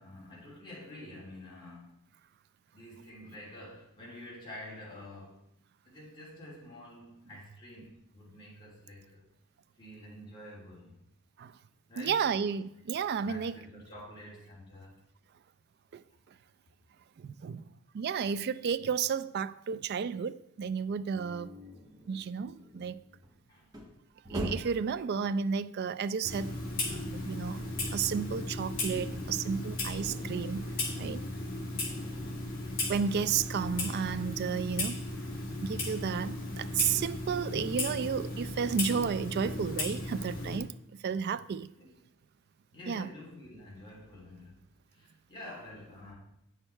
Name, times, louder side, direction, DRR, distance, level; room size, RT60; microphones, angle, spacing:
voice 1, 0.0-1.9 2.7-5.4 5.8-9.3 9.8-10.9 11.9-12.3 13.2-15.0 23.5-23.7 41.8-42.0 42.7-44.6 44.9-46.1, left 1 dB, 20° left, 2.9 m, -48 dB
voice 2, 12.0-13.6 15.9-16.0 17.2-17.6 17.9-21.6 22.1-23.0 24.3-26.6 26.9-27.7 27.9-30.6 31.0-31.2 32.9-35.0 35.6-40.7 41.0-41.7 42.9-43.1, right 6 dB, 50° right, 0.3 m, -32 dB
sound 1, 21.1-24.9 26.3-28.5 28.8-34.6, equal, 20° right, 1.2 m, -46 dB
Clock, 26.2-40.6, left 2 dB, 45° left, 2.4 m, -36 dB
8.8 x 6.4 x 4.4 m
head